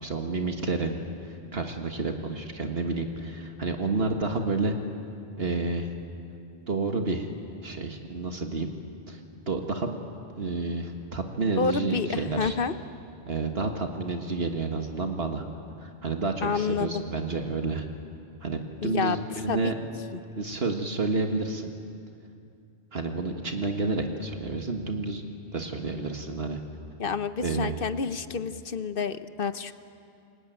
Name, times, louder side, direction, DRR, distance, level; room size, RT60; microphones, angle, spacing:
voice 1, 0.0-4.7 5.4-5.9 6.7-7.3 7.6-8.7 9.1-10.0 10.4-12.6 13.3-15.4 15.8-17.9 18.4-19.8 20.4-21.7 22.9-25.2 25.5-26.6 27.4-27.8, right 3 dB, 65° right, 4 dB, 1.8 m, -30 dB
voice 2, 11.6-12.7 16.4-17.0 18.8-19.2 19.5-19.6 27.0-29.7, left 5 dB, 55° left, 11 dB, 1.0 m, -29 dB
28.5 x 22.5 x 9.1 m, 2.5 s
omnidirectional pair, 1.1 m